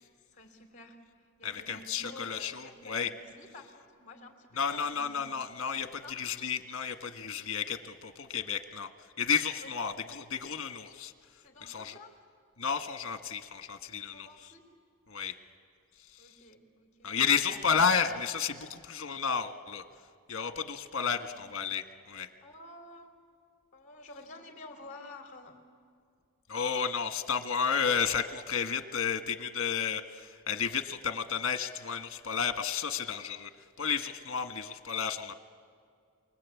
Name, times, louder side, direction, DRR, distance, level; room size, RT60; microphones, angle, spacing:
voice 1, 0.3-5.3 5.9-6.3 7.2-7.6 9.6-9.7 11.4-12.1 14.1-14.6 16.2-17.7 20.9-21.4 22.4-23.2 23.7-25.6, left 2 dB, 35° left, 3 dB, 3.5 m, -51 dB
voice 2, 1.4-3.1 4.6-8.9 9.2-11.1 11.6-11.9 12.6-14.3 15.1-15.4 17.0-19.8 20.3-22.3 26.5-33.5 33.8-35.3, left 6 dB, 65° left, 7 dB, 1.5 m, -32 dB
29.0 x 24.0 x 8.5 m, 2.1 s
head